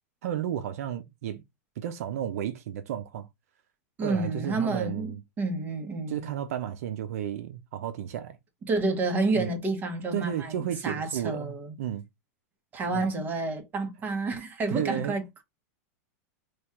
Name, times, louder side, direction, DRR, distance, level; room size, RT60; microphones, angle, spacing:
voice 1, 0.2-1.4 1.8-3.3 4.0-5.2 6.1-8.4 9.3-9.5 10.1-12.0 12.9-13.0 14.7-15.2, right 10 dB, 70° right, 0.5 m, -33 dB
voice 2, 4.0-6.3 8.7-11.7 12.7-15.4, right 3 dB, 20° right, 1.0 m, -29 dB
3.1 x 2.3 x 4.3 m
supercardioid pair, 140°, 8 cm